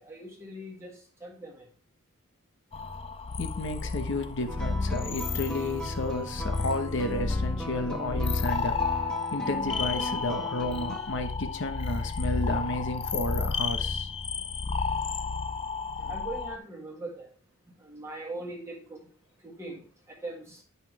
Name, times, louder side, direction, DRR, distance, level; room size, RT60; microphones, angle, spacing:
voice 1, 0.0-1.7 16.1-17.3 17.8-19.1 19.4-20.6, right 2 dB, 15° right, 1.7 m, -41 dB
sound 1, 2.7-16.6, left 4 dB, 30° left, 0.5 m, -32 dB
voice 2, 3.4-8.8 9.3-14.1 16.0-16.1, left 2 dB, 60° left, 1.1 m, -32 dB
sound 2, 4.5-11.1, equal, 5° left, 1.3 m, -38 dB
10.0 x 5.5 x 4.8 m
head